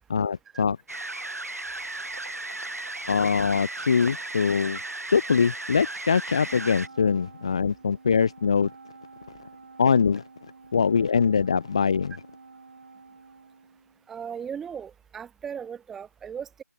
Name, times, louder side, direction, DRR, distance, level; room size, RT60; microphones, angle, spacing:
voice 1, 0.1-0.8 3.1-4.8 5.1-8.7 9.8-10.2 10.7-12.1, left 6 dB, 20° left, 1.2 m, -23 dB
sound 1, 0.9-6.9, right 2 dB, 55° right, 6.7 m, -35 dB
Wind instrument woodwind instrument, 6.4-14.1, right 4 dB, 35° right, 5.8 m, -50 dB
voice 2, 14.1-16.6, right 7 dB, 5° right, 2.1 m, -37 dB
open air
figure-of-eight pair, 165°, 10 cm